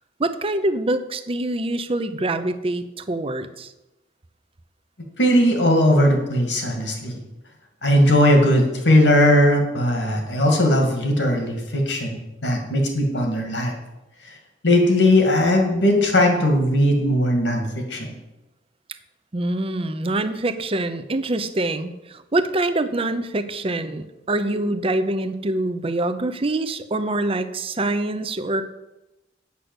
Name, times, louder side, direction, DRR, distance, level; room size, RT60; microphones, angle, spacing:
voice 1, 0.2-3.7 19.3-28.7, right 2 dB, 30° right, 11 dB, 0.7 m, -25 dB
voice 2, 5.2-7.2 7.8-13.7 14.2-14.3 14.6-18.1, left 1 dB, 75° left, 3 dB, 2.3 m, -18 dB
8.3 x 6.4 x 7.9 m, 0.98 s
head